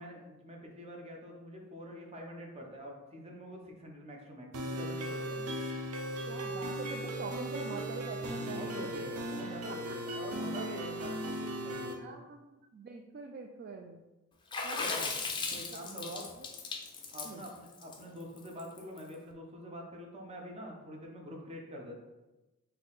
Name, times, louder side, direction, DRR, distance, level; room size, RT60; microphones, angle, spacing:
voice 1, 0.0-5.5 8.5-12.2 14.8-14.9 15.5-16.4 17.1-22.0, equal, 30° right, 0 dB, 0.8 m, -45 dB
sound 1, 4.5-11.9, right 1 dB, 85° right, 0.6 m, -37 dB
voice 2, 6.3-8.9 10.6-10.7 12.0-14.0 14.6-15.1 15.8-16.1 16.4-16.5 17.2-17.4, right 4 dB, 45° right, 2 dB, 0.3 m, -44 dB
Water / Splash splatter, 14.5-19.0, left 4 dB, 20° left, 0.5 m, -37 dB
4.0 x 2.7 x 3.9 m, 1.0 s
head